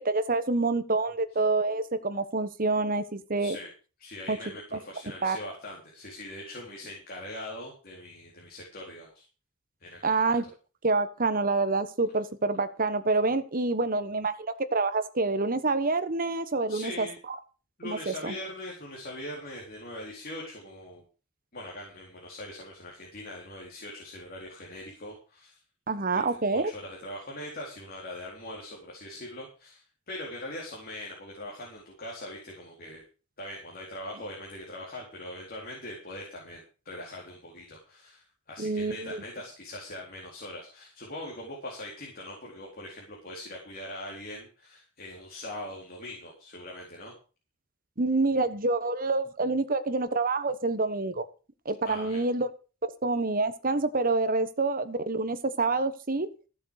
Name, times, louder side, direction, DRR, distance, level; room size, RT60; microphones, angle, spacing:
voice 1, 0.0-3.6 4.3-4.4 5.2-5.4 10.0-10.4 10.8-14.4 14.7-17.1 17.8-18.3 25.9-26.7 38.6-39.2 48.0-51.2 51.6-52.5 53.0-56.3, right 3 dB, 45° right, 11 dB, 1.2 m, -27 dB
voice 2, 3.4-3.7 4.0-9.2 9.8-10.4 16.7-17.2 17.8-21.1 21.5-25.6 26.1-26.2 26.5-33.0 33.4-47.1 51.8-52.2, left 1 dB, 45° left, -2 dB, 4.1 m, -41 dB
15.0 x 7.1 x 6.6 m, 0.36 s
head